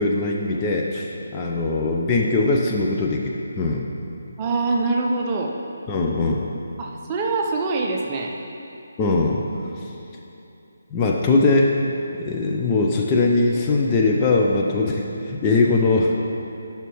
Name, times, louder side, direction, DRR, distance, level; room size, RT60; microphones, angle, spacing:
voice 1, 0.0-3.2 3.6-3.8 5.9-6.5 9.0-9.4 10.9-11.7 12.2-16.2, left 3 dB, 20° left, -1 dB, 0.6 m, -20 dB
voice 2, 4.4-5.5 6.8-8.3, right 3 dB, 25° right, -1 dB, 0.7 m, -24 dB
11.0 x 5.7 x 3.1 m, 2.8 s
figure-of-eight pair, 150°, 0 cm